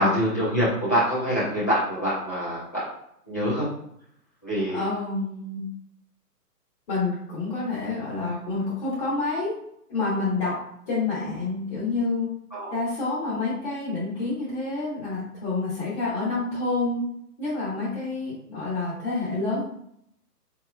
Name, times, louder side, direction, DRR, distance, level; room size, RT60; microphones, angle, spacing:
voice 1, 0.0-2.8 3.3-3.7 4.4-4.8 12.5-12.8, equal, 10° left, -9 dB, 0.5 m, -25 dB
voice 2, 4.7-5.6 6.9-9.5 9.9-10.6 10.9-12.3 12.7-17.0 17.4-19.7, left 3 dB, 35° left, -7 dB, 1.3 m, -28 dB
4.3 x 3.4 x 2.3 m, 0.73 s
figure-of-eight pair, 130°, 48 cm